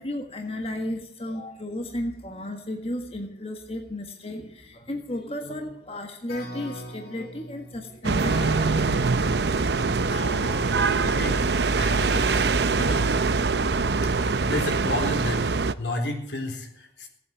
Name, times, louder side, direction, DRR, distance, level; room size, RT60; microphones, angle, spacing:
voice 1, 0.0-9.4, left 1 dB, 35° left, 4 dB, 1.6 m, -34 dB
sound 1, 6.3-13.9, left 2 dB, 60° left, 3.1 m, -41 dB
sound 2, 8.0-15.7, right 4 dB, 75° right, 0.7 m, -23 dB
voice 2, 11.0-12.4 12.8-13.1 14.4-17.1, left 1 dB, 90° left, 3 dB, 4.0 m, -32 dB
18.0 x 8.5 x 9.1 m, 0.73 s
head